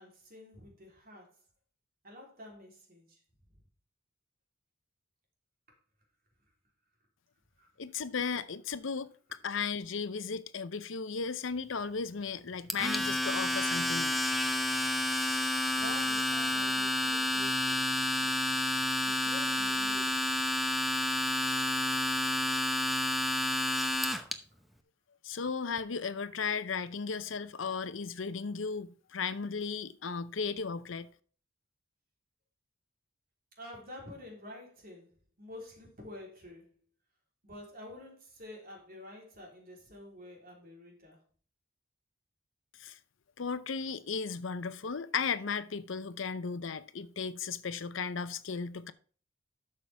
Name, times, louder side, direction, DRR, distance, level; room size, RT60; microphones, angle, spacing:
voice 1, 0.0-1.4 2.0-3.2 3.5-3.6 7.6-7.7 15.7-18.4 18.7-20.2 24.2-24.3 33.5-36.7 37.4-41.2, left 1 dB, 45° right, 3.5 m, -49 dB
voice 2, 7.8-9.1 9.4-14.2 25.2-31.1 42.8-43.0 43.4-48.9, left 5 dB, 65° left, 0.7 m, -35 dB
Domestic sounds home sounds, 12.7-24.3, left 1 dB, ahead, 0.8 m, -30 dB
12.0 x 6.6 x 3.4 m
head